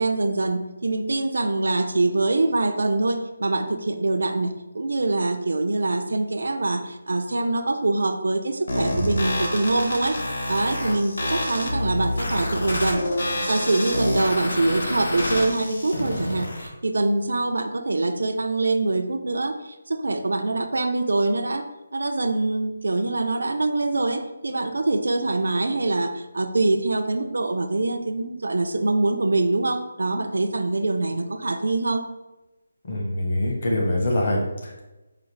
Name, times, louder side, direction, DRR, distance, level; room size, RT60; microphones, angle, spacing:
voice 1, 0.0-10.2 10.5-13.1 13.5-32.0, right 2 dB, 90° right, 7 dB, 0.4 m, -24 dB
sound 1, 8.7-16.7, left 1 dB, 80° left, 0.9 m, -27 dB
voice 2, 32.8-34.8, left 1 dB, 45° left, -2 dB, 1.0 m, -24 dB
4.8 x 2.4 x 3.2 m, 1.0 s
hypercardioid pair, 175°, 0 cm